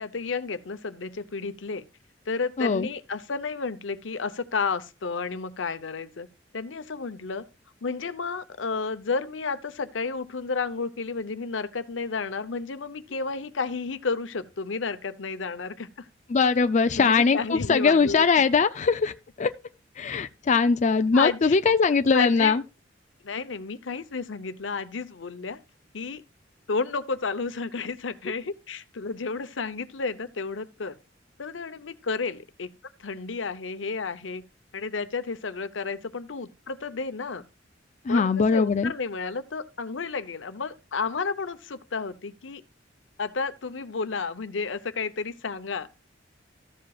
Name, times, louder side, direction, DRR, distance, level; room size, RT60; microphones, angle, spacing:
voice 1, 0.0-1.8 2.3-6.3 6.5-7.5 7.8-16.1 16.9-18.2 21.1-21.6 22.1-22.6 23.2-25.6 25.9-26.2 26.7-30.9 31.4-32.7 33.0-34.4 34.7-37.4 38.1-42.6 43.2-45.9, left 4 dB, 85° left, 0.8 m, -31 dB
voice 2, 16.3-19.5 20.0-22.6 38.1-38.9, left 5 dB, 40° left, 0.4 m, -21 dB
14.0 x 7.6 x 2.4 m
head